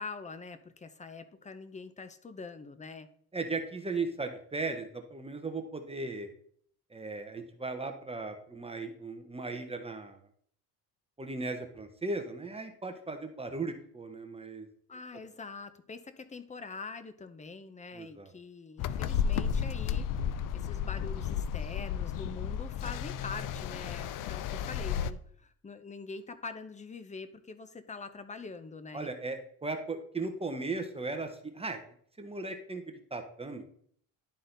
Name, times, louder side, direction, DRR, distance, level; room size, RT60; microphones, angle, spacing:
voice 1, 0.0-3.1 14.9-29.1, left 4 dB, 20° left, 11 dB, 0.7 m, -44 dB
voice 2, 3.3-6.3 6.9-10.2 11.2-14.7 17.9-18.3 28.9-31.8 32.2-33.6, right 3 dB, 15° right, 6 dB, 0.9 m, -37 dB
sound 1, 18.8-25.1, left 8 dB, 60° left, 0.5 m, -33 dB
11.5 x 4.0 x 3.9 m, 0.62 s
cardioid pair, 110°, 37 cm